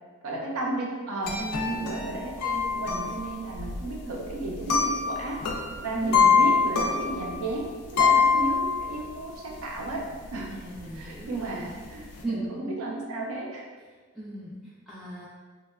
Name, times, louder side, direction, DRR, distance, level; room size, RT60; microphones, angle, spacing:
voice 1, 0.2-1.4 1.7-5.4 5.8-7.7 7.9-10.0 10.3-10.5 10.9-13.6, right 2 dB, 70° right, -2 dB, 0.5 m, -33 dB
sound 1, 1.3-9.1 9.6-9.7 9.9-10.5 10.7-12.2, left 5 dB, 85° left, 0.4 m, -25 dB
voice 2, 1.4-2.2 5.9-6.4 10.5-11.7 12.2-12.7 14.1-15.3, right 2 dB, ahead, -10 dB, 0.3 m, -35 dB
2.9 x 2.2 x 2.2 m, 1.4 s
head